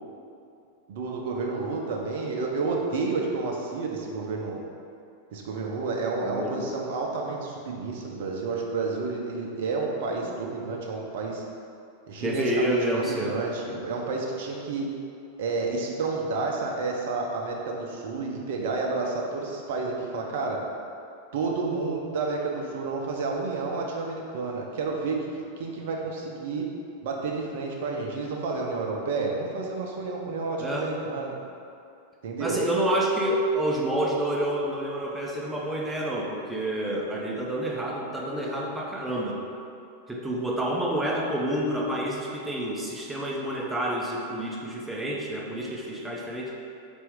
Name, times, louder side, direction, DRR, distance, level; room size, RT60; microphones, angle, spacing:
voice 1, 0.9-4.6 5.3-11.4 12.1-14.9 15.4-20.6 21.3-25.3 25.6-26.6 27.0-31.4 32.2-32.6, right 3 dB, 55° right, 0 dB, 0.5 m, -30 dB
voice 2, 6.2-6.6 12.2-13.4 30.6-30.9 32.4-39.4 40.1-46.5, right 1 dB, 5° right, -3 dB, 0.6 m, -28 dB
4.2 x 2.6 x 3.6 m, 2.5 s
figure-of-eight pair, 90°, 0 cm